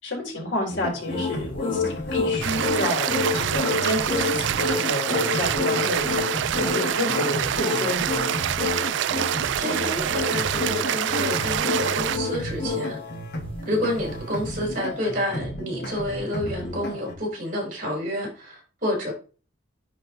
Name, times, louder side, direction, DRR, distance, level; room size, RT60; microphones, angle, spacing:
voice 1, 0.0-6.1 6.5-8.1, left 1 dB, 80° left, 3.9 m, -30 dB
sound 1, 0.7-17.1, left 1 dB, 55° left, 1.5 m, -34 dB
sound 2, 1.1-12.9, left 4 dB, 30° left, 1.4 m, -28 dB
sound 3, 2.4-12.2, right 10 dB, 75° right, 0.3 m, -26 dB
voice 2, 9.5-13.0 13.7-19.1, equal, 45° right, 4.2 m, -29 dB
10.5 x 4.6 x 3.0 m
head